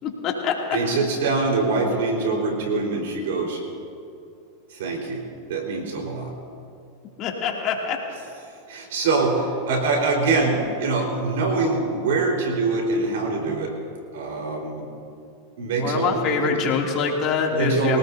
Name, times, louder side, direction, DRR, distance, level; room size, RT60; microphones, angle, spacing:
voice 1, 0.0-0.5 7.2-8.0 15.8-18.0, left 6 dB, 45° left, 0 dB, 2.7 m, -24 dB
voice 2, 0.7-3.6 4.7-6.3 8.7-13.8 14.1-14.8 15.6-16.7 17.5-18.0, right 3 dB, 75° right, 0 dB, 4.4 m, -24 dB
25.0 x 18.0 x 2.8 m, 2.5 s
hypercardioid pair, 105°, 0 cm